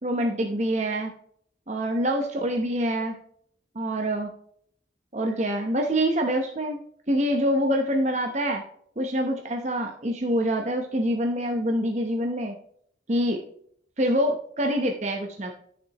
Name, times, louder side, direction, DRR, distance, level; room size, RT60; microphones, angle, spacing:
voice 1, 0.0-1.1 1.7-3.1 3.7-4.3 5.1-6.8 7.1-8.6 9.0-12.5 13.1-13.4 14.0-15.5, equal, 35° right, 3 dB, 0.9 m, -25 dB
12.0 x 6.7 x 3.0 m, 0.64 s
head